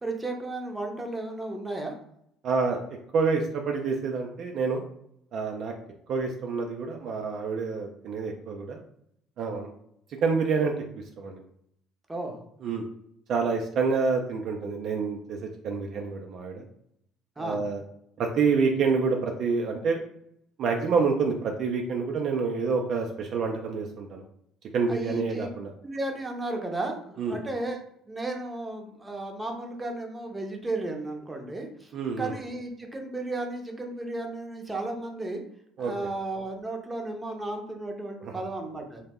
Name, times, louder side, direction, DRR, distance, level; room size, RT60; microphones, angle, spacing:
voice 1, 0.0-2.0 12.1-12.4 17.4-17.7 24.9-25.5 25.8-27.8 28.1-35.4 35.8-39.0, right 2 dB, 15° right, 2 dB, 0.6 m, -34 dB
voice 2, 2.4-2.8 3.1-4.8 5.3-5.7 6.1-8.8 9.4-9.7 10.2-10.7 11.2-11.4 12.6-12.8 13.3-16.6 17.4-17.8 18.2-20.0 20.6-24.2 24.7-25.7 27.2-27.4 31.9-32.3 35.8-35.9, right 5 dB, 60° right, 2 dB, 0.3 m, -27 dB
2.1 x 2.0 x 3.5 m, 0.73 s
hypercardioid pair, 70°, 0 cm